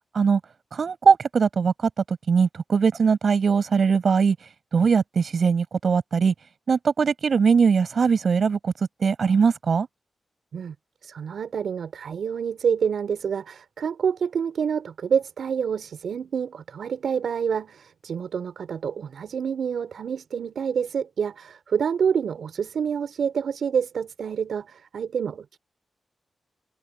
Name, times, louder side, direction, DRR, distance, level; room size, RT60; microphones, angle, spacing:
voice 1, 0.7-4.4 4.7-6.3 6.7-8.7 9.0-9.9, right 5 dB, 65° right, 7.6 m, -21 dB
voice 2, 11.0-25.6, right 7 dB, 80° right, 6.2 m, -27 dB
open air
cardioid pair, 75°, 0 cm